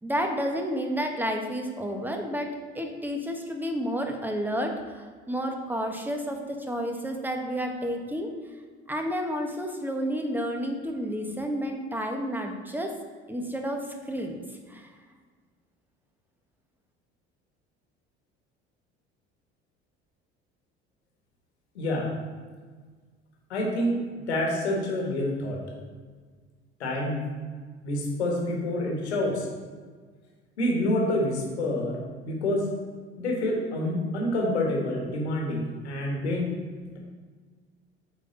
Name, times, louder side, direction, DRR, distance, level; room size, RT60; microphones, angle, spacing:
voice 1, 0.0-8.3 8.9-13.0 13.3-14.4 14.7-14.9, equal, 5° right, 3 dB, 1.1 m, -31 dB
voice 2, 21.7-22.1 23.5-24.0 24.3-25.6 26.8-27.2 27.8-29.5 30.6-32.7 33.2-36.6, left 1 dB, 80° left, 0 dB, 1.5 m, -27 dB
8.0 x 4.0 x 3.8 m, 1.5 s
figure-of-eight pair, 60°, 33 cm